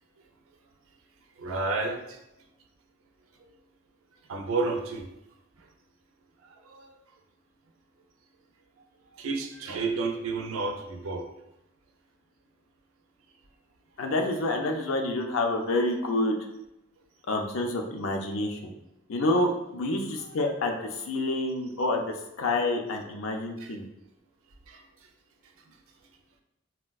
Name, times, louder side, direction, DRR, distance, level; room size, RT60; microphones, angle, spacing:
voice 1, 1.4-2.2 4.3-5.1 6.6-6.9 9.2-11.3 20.2-20.4 20.6-20.8 23.6-23.8 24.7-24.8, right 3 dB, 85° right, 4 dB, 0.5 m, -31 dB
voice 2, 14.0-16.4 17.3-18.6 19.1-22.0 22.4-23.9, left 2 dB, 80° left, 3 dB, 0.5 m, -28 dB
4.2 x 2.1 x 2.3 m, 0.88 s
head